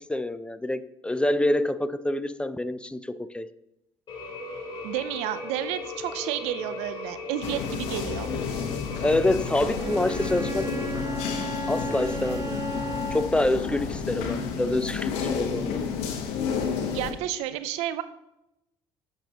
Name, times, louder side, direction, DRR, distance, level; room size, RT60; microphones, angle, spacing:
voice 1, 0.1-3.5 9.0-10.7 11.7-12.7 13.1-15.8, left 1 dB, 10° left, 14 dB, 0.4 m, -26 dB
sound 1, 4.1-10.9, left 3 dB, 50° left, 2.9 m, -37 dB
voice 2, 4.8-8.3 16.9-18.0, right 12 dB, 80° right, 13 dB, 0.5 m, -31 dB
sound 2, 7.4-17.1, left 6 dB, 80° left, 1.0 m, -31 dB
Bowed string instrument, 9.8-13.6, right 2 dB, 30° right, 0.6 m, -35 dB
8.0 x 6.7 x 2.9 m, 0.87 s
supercardioid pair, 75°, 11 cm